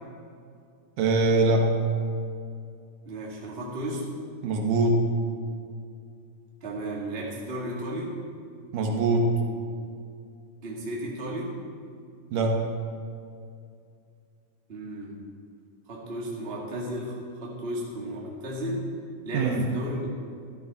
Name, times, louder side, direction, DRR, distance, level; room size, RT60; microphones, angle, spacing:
voice 1, 1.0-1.7 4.4-5.0 8.7-9.3 12.3-12.6 19.3-19.6, right 2 dB, 75° right, 2 dB, 2.6 m, -22 dB
voice 2, 3.1-4.1 6.6-8.2 10.6-11.5 14.7-15.2 15.9-18.8 19.2-20.1, right 1 dB, 20° right, -4 dB, 1.9 m, -34 dB
14.0 x 13.0 x 4.4 m, 2.4 s
omnidirectional pair, 3.8 m